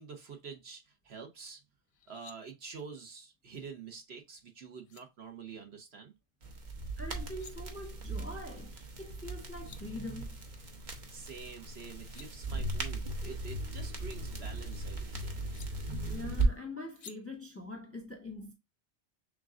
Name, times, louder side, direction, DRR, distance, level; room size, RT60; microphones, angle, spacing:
voice 1, 0.0-1.6 2.1-6.1 11.1-15.3, right 5 dB, 65° right, 1.3 m, -47 dB
sound 1, 1.9-2.4 4.4-4.5 4.8-5.0 7.1-7.5 9.2-9.3 9.5-9.8 11.7-12.3 13.8-14.8 15.5-15.7 17.0-17.2, left 7 dB, 60° left, 0.7 m, -54 dB
sound 2, 6.4-16.5, right 2 dB, 45° right, 1.0 m, -37 dB
voice 2, 7.0-10.4 16.1-18.5, left 2 dB, 15° left, 0.7 m, -43 dB
6.6 x 2.5 x 2.4 m
omnidirectional pair, 1.2 m